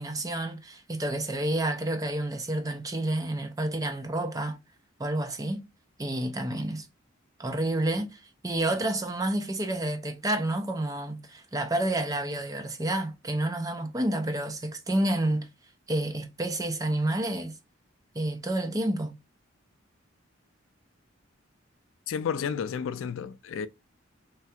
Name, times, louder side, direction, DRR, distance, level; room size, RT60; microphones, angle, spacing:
voice 1, 0.0-4.6 5.0-5.7 6.0-6.9 7.4-15.5 15.9-17.5 18.1-19.2, right 1 dB, 15° right, 0.5 m, -29 dB
voice 2, 22.1-23.7, left 7 dB, 70° left, 0.3 m, -31 dB
3.2 x 2.3 x 2.7 m
head